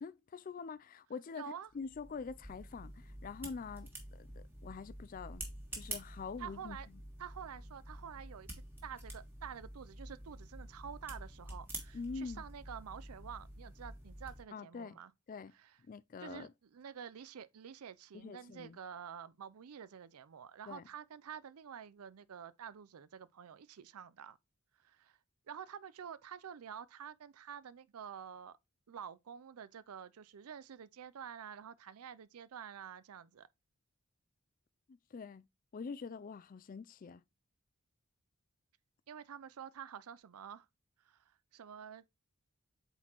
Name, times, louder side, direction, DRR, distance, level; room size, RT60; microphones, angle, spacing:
voice 1, 0.0-3.9 4.2-5.5 5.7-7.0 11.9-12.4 14.5-15.0 15.3-15.5 15.9-16.5 18.1-18.8 20.7-20.9 34.9-35.4 35.7-37.2, left 5 dB, 40° left, 0.3 m, -45 dB
voice 2, 1.3-1.7 6.4-6.9 7.2-15.1 15.5-15.7 16.2-24.4 24.8-25.2 25.5-28.6 28.9-33.5 39.1-40.7 41.0-42.2, right 8 dB, 80° right, 0.5 m, -49 dB
sound 1, 1.7-14.4, right 1 dB, 10° right, 1.5 m, -48 dB
7.9 x 4.3 x 2.9 m
head